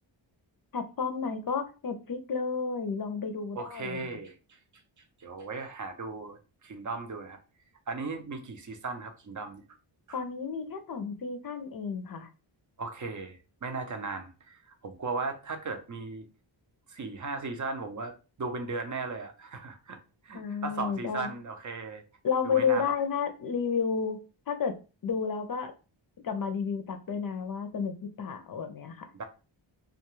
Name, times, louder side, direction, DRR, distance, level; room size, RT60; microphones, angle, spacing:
voice 1, 0.7-4.0 10.1-12.3 20.3-21.3 22.2-24.2 24.5-24.8 25.0-25.7 26.2-29.1, left 6 dB, 45° left, 0.5 m, -31 dB
voice 2, 3.5-4.6 5.2-7.4 7.9-9.6 10.1-10.2 12.8-16.2 16.9-18.1 18.4-20.0 20.2-22.0 22.4-22.9 29.1-29.2, right 3 dB, 40° right, 0.6 m, -37 dB
2.4 x 2.3 x 3.0 m
cardioid pair, 65°, 48 cm